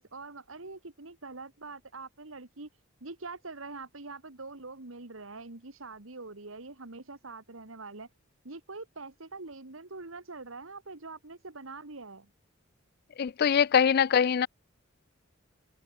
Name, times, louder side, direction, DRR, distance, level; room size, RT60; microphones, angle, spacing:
voice 1, 0.0-2.7 3.0-8.1 8.4-12.3, right 3 dB, 85° right, 2.1 m, -44 dB
voice 2, 13.2-14.5, left 7 dB, 50° left, 0.4 m, -23 dB
head